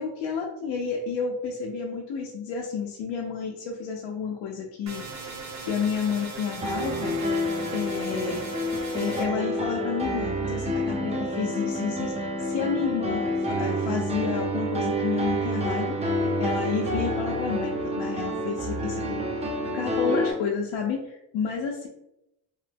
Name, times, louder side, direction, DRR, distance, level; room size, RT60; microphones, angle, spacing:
voice 1, 0.0-7.2 7.7-8.5 8.9-19.5 19.7-21.9, left 6 dB, 75° left, -1 dB, 0.6 m, -31 dB
sound 1, 4.9-9.3, right 3 dB, 40° right, 0.8 m, -38 dB
Piano, 6.6-20.3, equal, 15° right, 0.4 m, -28 dB
3.0 x 2.1 x 3.3 m, 0.86 s
cardioid pair, 105°, 42 cm